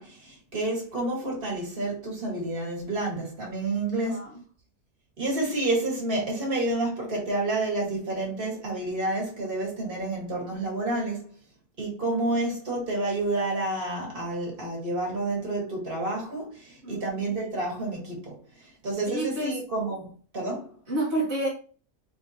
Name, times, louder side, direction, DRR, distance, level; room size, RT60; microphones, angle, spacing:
voice 1, 0.0-4.4 5.2-11.3 11.8-20.7, right 2 dB, 50° right, 1.9 m, -29 dB
voice 2, 4.0-4.3 16.8-17.0 19.1-19.6 20.9-21.5, right 1 dB, 70° right, 1.6 m, -29 dB
4.1 x 4.0 x 2.8 m
omnidirectional pair, 1.2 m